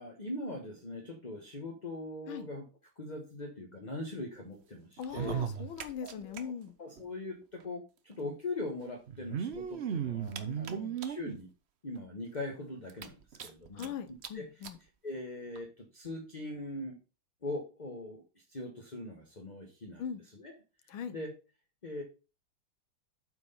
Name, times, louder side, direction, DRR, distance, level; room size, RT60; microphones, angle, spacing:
voice 1, 0.0-2.6 3.0-5.4 6.0-6.5 6.8-11.5 11.8-13.9 14.3-14.5 15.0-17.0 17.4-18.2 18.5-20.0 20.3-20.5 20.9-21.3 21.8-22.0, left 2 dB, 25° left, 1.2 m, -41 dB
voice 2, 5.0-6.7 10.5-11.0 13.7-14.8 20.0-20.2 20.9-21.1, left 7 dB, 80° left, 1.8 m, -41 dB
sound 1, 5.0-6.4 6.7-6.8 7.0-7.1 8.1-8.2 9.1-11.4 12.0-12.1 12.4-12.5 12.9-13.9 14.2-14.3 14.6-14.8 15.6-15.7, right 8 dB, 65° right, 0.6 m, -36 dB
8.2 x 4.7 x 5.5 m
omnidirectional pair, 2.2 m